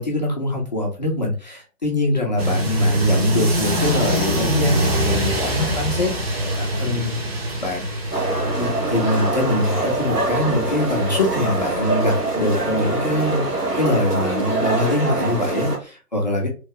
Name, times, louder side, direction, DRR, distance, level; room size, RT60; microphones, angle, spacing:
voice 1, 0.0-6.1 6.4-7.2 7.6-13.5 13.7-16.5, left 1 dB, 30° left, -1 dB, 0.6 m, -23 dB
sound 1, 2.4-15.6, equal, 40° right, 1.2 m, -26 dB
sound 2, 8.1-15.8, right 2 dB, 80° right, 1.7 m, -24 dB
3.2 x 2.6 x 3.5 m, 0.36 s
figure-of-eight pair, 140°, 46 cm